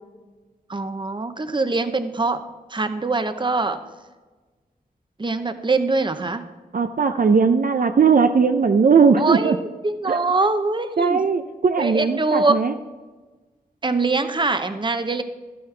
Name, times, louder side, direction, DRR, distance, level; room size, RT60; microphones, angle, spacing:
voice 1, 0.7-2.4 2.7-3.8 5.2-6.4 9.2-11.2 11.8-12.6 13.8-15.2, right 3 dB, 30° right, 9 dB, 0.8 m, -23 dB
voice 2, 6.7-9.6 10.1-10.2 11.0-12.8, right 5 dB, 60° right, 7 dB, 0.5 m, -18 dB
12.5 x 9.4 x 3.3 m, 1.3 s
wide cardioid pair, 80°, 16 cm